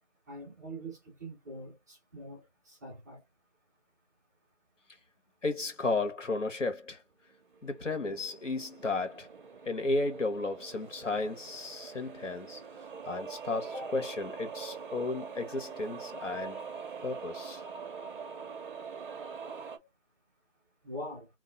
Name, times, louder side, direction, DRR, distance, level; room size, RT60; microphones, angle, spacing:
voice 1, 0.3-3.2 20.8-21.3, right 1 dB, 15° right, 0.9 m, -43 dB
voice 2, 5.4-7.0 7.6-9.3 9.6-12.6 13.0-16.6 17.0-17.6, left 3 dB, 85° left, 1.5 m, -33 dB
sound 1, 7.3-19.8, right 6 dB, 45° right, 0.9 m, -44 dB
3.0 x 2.6 x 4.0 m
figure-of-eight pair, 165°, 36 cm